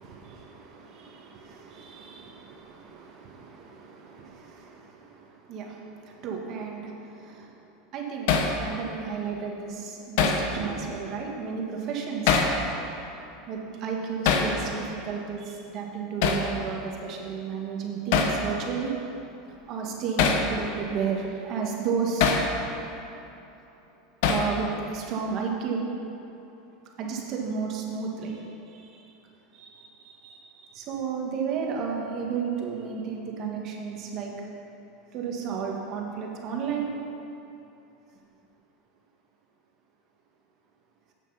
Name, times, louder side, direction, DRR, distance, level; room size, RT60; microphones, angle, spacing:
voice 1, 0.0-7.6 7.9-12.4 13.5-18.9 19.5-22.3 24.3-25.8 27.0-29.1 29.5-34.3 35.1-36.9, right 6 dB, 45° right, 0 dB, 1.6 m, -33 dB
Hammer, 8.3-8.5 10.2-10.4 12.3-12.6 14.2-14.5 16.2-16.5 18.1-18.4 20.2-20.5 22.2-22.5 24.2-24.5, left 6 dB, 70° left, 1.0 m, -22 dB
8.5 x 7.3 x 5.7 m, 2.9 s
supercardioid pair, 125°, 0 cm